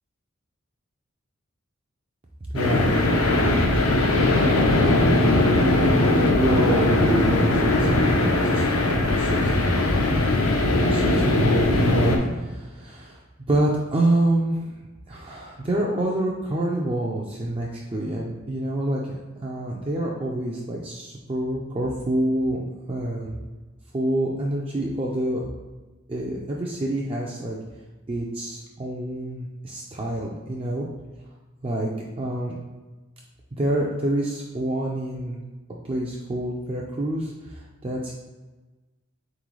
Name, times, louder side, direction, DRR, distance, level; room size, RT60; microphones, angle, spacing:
voice 1, 2.5-3.8 4.5-5.2 6.3-9.9 10.8-13.2 13.5-14.7 15.1-22.6 22.9-23.4 23.9-25.4 26.1-27.6 28.1-30.9 31.6-31.9 32.2-32.5 33.5-35.4 35.8-38.1, right 1 dB, 25° right, -3 dB, 0.4 m, -27 dB
sound 1, 2.6-12.2, left 2 dB, 80° left, 0.6 m, -20 dB
4.0 x 3.7 x 3.1 m, 1.2 s
head